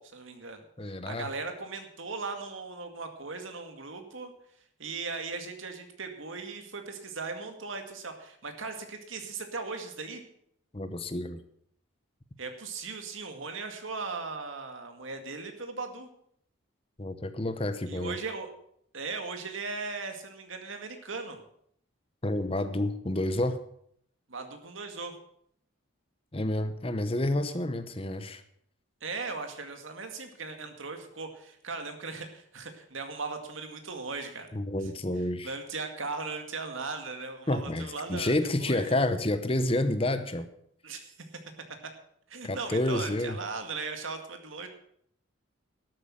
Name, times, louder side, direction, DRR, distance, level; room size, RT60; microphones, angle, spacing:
voice 1, 0.0-0.6 0.9-4.3 4.8-10.2 12.4-16.1 17.9-18.5 18.9-21.4 24.3-25.1 29.0-34.5 35.4-39.0 40.8-41.1 42.3-44.7, right 4 dB, 75° right, 6 dB, 2.2 m, -38 dB
voice 2, 0.8-1.3 10.7-11.4 17.0-18.2 22.2-23.6 26.3-28.4 34.5-35.5 37.5-40.5 42.4-43.4, left 1 dB, 25° left, 10 dB, 0.9 m, -29 dB
12.5 x 8.4 x 7.3 m, 0.68 s
head